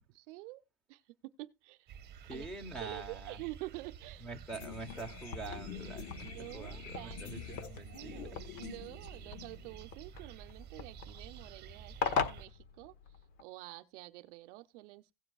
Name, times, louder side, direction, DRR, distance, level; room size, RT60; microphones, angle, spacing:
voice 1, 0.1-0.6 0.9-1.9 2.3-2.5 2.8-4.3 6.2-7.6 7.9-12.9 13.4-15.1, right 20 dB, 50° right, 0.6 m, -48 dB
sound 1, 1.9-12.5, right 8 dB, 20° right, 1.3 m, -51 dB
voice 2, 2.3-3.4 4.2-8.4, right 3 dB, ahead, 0.9 m, -45 dB
sound 2, 4.5-9.9, left 8 dB, 90° left, 1.4 m, -48 dB
sound 3, 4.7-13.4, left 6 dB, 50° left, 1.4 m, -41 dB
16.5 x 7.6 x 2.3 m
supercardioid pair, 145°, 48 cm